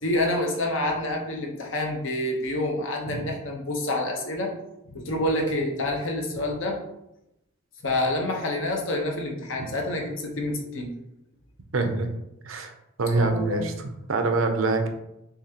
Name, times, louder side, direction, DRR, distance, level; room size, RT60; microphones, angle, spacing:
voice 1, 0.0-4.5 4.9-6.8 7.8-10.9 13.1-13.6, left 1 dB, 65° left, 1 dB, 0.9 m, -27 dB
voice 2, 11.7-12.1 12.4-12.7 13.0-14.9, right 3 dB, 75° right, 6 dB, 0.6 m, -25 dB
6.6 x 2.4 x 2.8 m, 0.85 s
head